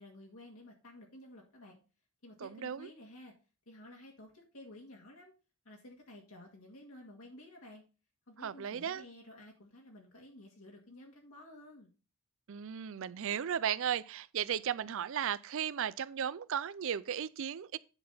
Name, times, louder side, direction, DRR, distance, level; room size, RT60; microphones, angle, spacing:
voice 1, 0.0-1.8 2.2-3.3 3.7-5.3 5.7-7.8 8.3-11.9, left 1 dB, 65° left, 1.9 m, -53 dB
voice 2, 2.4-2.9 8.4-9.0 12.5-17.8, right 8 dB, 60° right, 0.4 m, -35 dB
10.0 x 4.2 x 5.5 m
head